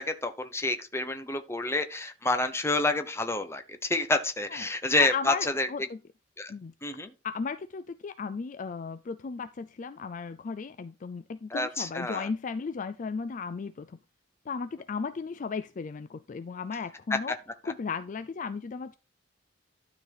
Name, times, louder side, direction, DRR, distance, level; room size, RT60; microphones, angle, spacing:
voice 1, 0.0-5.7 6.4-6.5 6.8-7.1 11.5-12.3 17.1-17.4, left 2 dB, 15° left, 0.9 m, -28 dB
voice 2, 5.0-6.0 6.5-6.7 7.2-14.0 14.5-17.3 17.6-19.0, left 5 dB, 40° left, 0.4 m, -35 dB
12.0 x 4.0 x 4.8 m
head